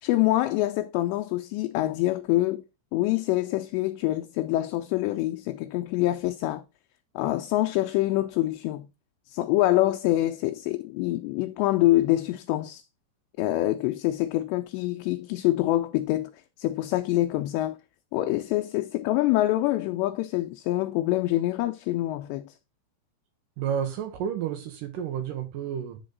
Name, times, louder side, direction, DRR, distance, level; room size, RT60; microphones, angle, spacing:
voice 1, 0.0-2.6 2.9-6.6 7.2-8.9 9.3-12.8 13.4-16.3 16.6-17.8 18.1-22.5, left 16 dB, 85° left, 2.5 m, -25 dB
voice 2, 23.6-26.0, right 8 dB, 85° right, 1.9 m, -31 dB
11.0 x 3.9 x 3.8 m
omnidirectional pair, 5.4 m